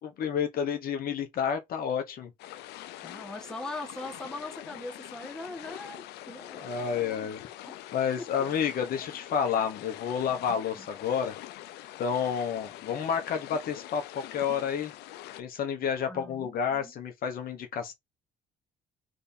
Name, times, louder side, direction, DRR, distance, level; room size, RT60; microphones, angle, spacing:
voice 1, 0.0-2.3 6.6-7.4 7.9-11.3 12.0-14.9 15.4-17.9, left 7 dB, 60° left, 1.2 m, -30 dB
sound 1, 2.4-15.4, left 14 dB, 85° left, 0.6 m, -44 dB
voice 2, 3.0-7.4 7.6-7.8 8.2-8.3 10.7-10.9 16.1-16.9, left 2 dB, 5° left, 1.5 m, -41 dB
3.5 x 3.4 x 4.3 m
cardioid pair, 110°, 17 cm